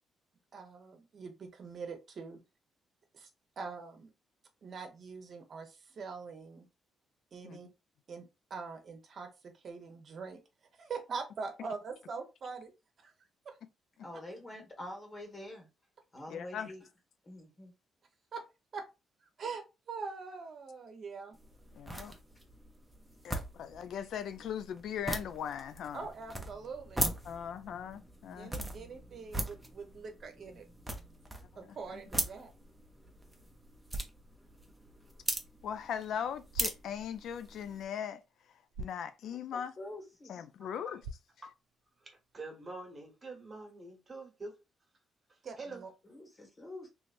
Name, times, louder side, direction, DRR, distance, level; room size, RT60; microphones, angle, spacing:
voice 1, 0.5-2.4 3.1-3.3 3.6-4.1 4.6-6.6 7.3-7.7 8.1-8.2 8.5-10.4 10.8-12.7 13.0-13.1 13.4-13.5 18.3-18.4 18.7-18.8 19.4-21.4 25.9-27.0 28.4-30.6 31.6-32.5 45.4-45.9, right 5 dB, 50° right, 0.9 m, -43 dB
voice 2, 14.0-15.7 16.1-16.8 17.2-17.7 39.5-40.4 46.0-46.9, left 1 dB, 35° left, 1.6 m, -46 dB
voice 3, 16.3-16.7 21.7-22.1 23.2-26.1 27.2-28.7 31.7-32.0 35.6-38.2 38.8-39.7 40.3-41.1, left 8 dB, 70° left, 0.3 m, -39 dB
sound 1, 21.3-37.8, right 1 dB, 5° right, 0.7 m, -40 dB
sound 2, 36.3-42.4, right 2 dB, 85° right, 0.5 m, -52 dB
voice 4, 42.0-44.5 45.3-45.8, right 3 dB, 30° right, 1.2 m, -46 dB
3.1 x 3.0 x 2.5 m
cardioid pair, 90°, 0 cm